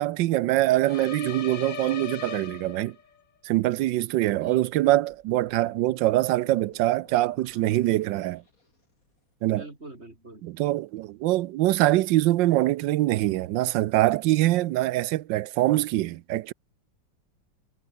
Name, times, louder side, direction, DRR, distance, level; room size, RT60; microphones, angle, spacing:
voice 1, 0.0-3.0 3.4-8.4 9.4-9.6 10.4-16.5, right 16 dB, 75° right, 1.3 m, -24 dB
sound 1, 0.8-3.2, left 7 dB, 75° left, 2.4 m, -38 dB
voice 2, 4.3-4.8 9.5-10.5, right 2 dB, 35° right, 4.4 m, -44 dB
sound 2, 5.1-9.1, left 3 dB, 45° left, 4.9 m, -56 dB
omnidirectional pair, 2.0 m